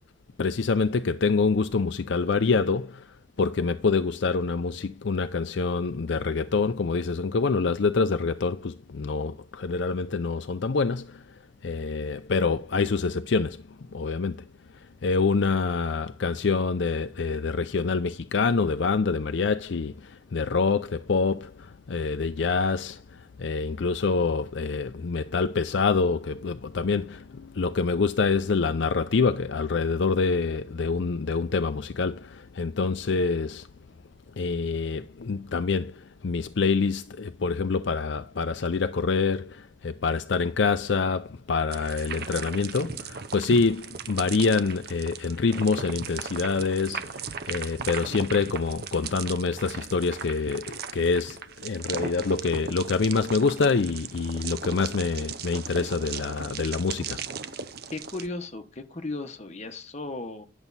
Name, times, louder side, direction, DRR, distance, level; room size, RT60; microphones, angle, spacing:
voice 1, 0.4-11.2 11.6-13.6 13.9-14.4 15.0-33.7 34.4-57.2, left 4 dB, 60° left, 0.5 m, -26 dB
sound 1, 41.7-58.2, right 6 dB, 50° right, 0.7 m, -37 dB
voice 2, 57.9-60.4, left 2 dB, 35° left, 1.2 m, -36 dB
11.0 x 7.1 x 4.1 m
head